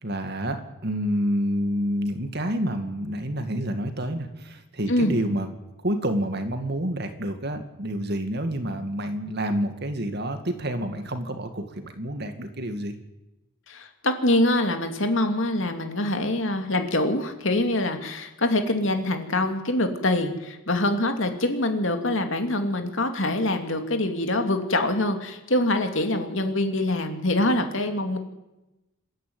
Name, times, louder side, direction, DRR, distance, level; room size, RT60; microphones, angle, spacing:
voice 1, 0.0-5.5 5.8-12.9, equal, 50° right, 7 dB, 2.2 m, -28 dB
voice 2, 13.7-28.2, left 1 dB, 60° left, 6 dB, 2.7 m, -24 dB
26.5 x 13.0 x 9.6 m, 1.0 s
head